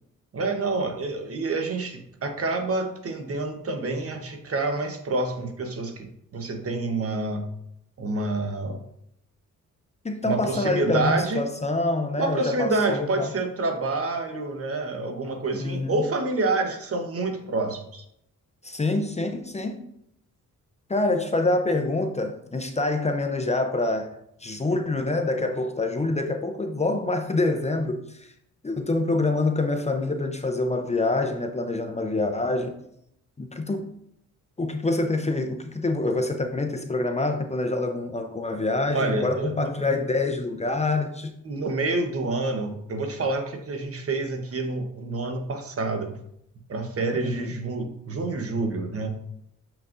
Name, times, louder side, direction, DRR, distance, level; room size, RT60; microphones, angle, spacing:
voice 1, 0.3-6.1 6.3-7.4 8.0-8.8 10.2-11.5 12.2-18.0 38.9-40.0 41.4-46.2 46.7-49.1, right 3 dB, 45° right, 5 dB, 1.1 m, -28 dB
voice 2, 10.0-13.3 15.6-16.0 18.6-19.8 20.9-24.1 24.4-28.3 28.6-32.8 33.4-33.9 34.6-41.3 47.1-47.5, left 2 dB, 20° left, 5 dB, 0.6 m, -26 dB
6.8 x 6.0 x 2.6 m, 0.74 s
cardioid pair, 90°, 32 cm